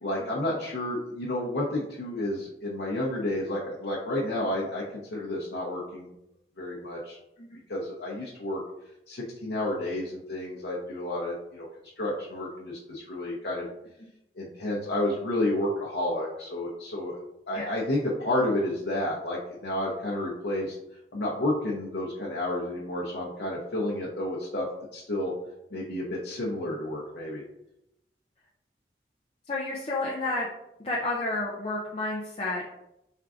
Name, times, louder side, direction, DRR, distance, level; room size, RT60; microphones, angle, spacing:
voice 1, 0.0-6.1 6.6-7.2 7.7-8.6 9.1-11.7 12.0-13.7 14.4-17.2 17.5-20.8 21.1-24.7 24.9-25.3 25.7-27.4, left 1 dB, 70° left, -4 dB, 0.7 m, -30 dB
voice 2, 29.5-30.5 30.8-32.6, left 2 dB, 35° left, -3 dB, 0.4 m, -31 dB
4.4 x 3.5 x 2.5 m, 0.85 s
head